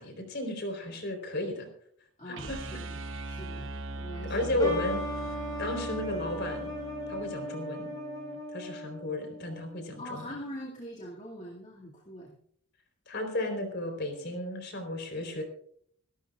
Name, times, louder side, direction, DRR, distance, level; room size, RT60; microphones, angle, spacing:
voice 1, 0.0-1.7 2.3-2.6 4.3-5.0 5.6-6.7 7.1-7.9 8.5-10.3 13.1-15.4, left 1 dB, 50° left, 5 dB, 3.9 m, -33 dB
voice 2, 2.2-4.7 10.0-12.3, equal, 35° left, -4 dB, 2.3 m, -43 dB
sound 1, 2.3-8.4, right 2 dB, 55° right, 1.1 m, -40 dB
sound 2, 4.6-10.0, equal, 15° left, 6.3 m, -38 dB
27.0 x 12.5 x 2.4 m, 0.63 s
head